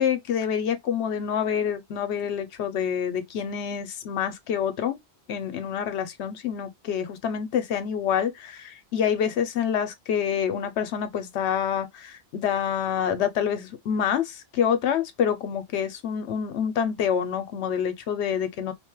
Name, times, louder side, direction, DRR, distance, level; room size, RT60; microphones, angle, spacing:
voice 1, 0.0-5.0 5.3-18.7, left 8 dB, 75° left, 0.9 m, -27 dB
2.5 x 2.2 x 2.9 m
omnidirectional pair, 1.2 m